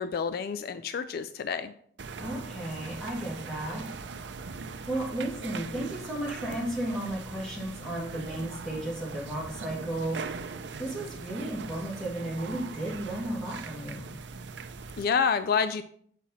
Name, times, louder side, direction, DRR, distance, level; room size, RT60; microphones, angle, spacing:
voice 1, 0.0-1.7 15.0-15.8, left 6 dB, 55° left, 11 dB, 0.3 m, -28 dB
sound 1, 2.0-15.1, right 4 dB, 70° right, 0.5 m, -41 dB
voice 2, 2.2-3.8 4.9-10.2 10.8-14.1, right 1 dB, 5° left, -5 dB, 2.4 m, -34 dB
7.5 x 5.7 x 4.2 m, 0.62 s
head